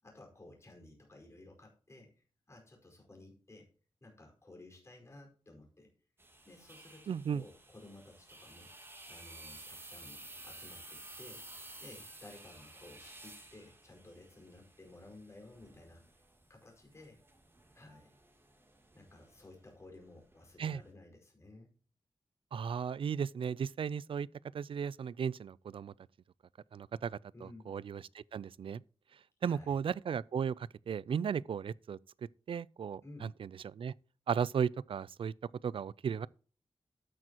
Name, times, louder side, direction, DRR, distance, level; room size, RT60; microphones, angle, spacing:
voice 1, 0.0-3.7 4.0-5.9 6.4-8.7 9.1-11.4 11.8-16.0 16.5-17.2 17.7-18.1 18.9-21.7 27.3-27.7 29.4-29.8 33.0-33.3, left 2 dB, 30° left, 4.8 m, -55 dB
sound 1, 6.2-20.9, right 2 dB, 25° right, 2.9 m, -54 dB
voice 2, 7.1-7.4 20.6-20.8 22.5-24.3 24.5-25.9 26.7-27.2 27.7-28.8 29.4-32.0 32.5-33.9 34.3-35.3 35.6-36.3, right 7 dB, 65° right, 0.4 m, -35 dB
12.5 x 9.0 x 2.9 m
wide cardioid pair, 145°, 10 cm